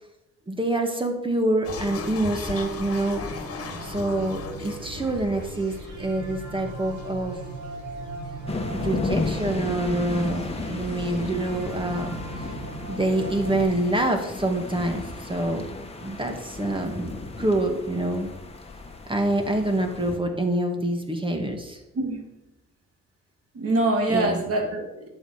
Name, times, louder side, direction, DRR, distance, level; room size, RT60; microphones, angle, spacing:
voice 1, 0.5-3.3 3.8-7.4 8.7-12.5 12.9-15.6 16.0-17.1 17.4-18.3 19.1-21.8 24.1-24.4, right 1 dB, 15° right, 4 dB, 2.1 m, -26 dB
sound 1, 1.6-8.5, left 4 dB, 50° left, 1.8 m, -38 dB
sound 2, 2.6-13.6, right 3 dB, 70° right, 3.9 m, -39 dB
sound 3, 8.5-20.2, left 3 dB, 20° left, 1.7 m, -34 dB
voice 2, 21.9-22.3 23.5-25.1, right 2 dB, 50° right, 2 dB, 3.0 m, -24 dB
11.0 x 7.8 x 5.2 m, 0.94 s
cardioid pair, 90°, 30 cm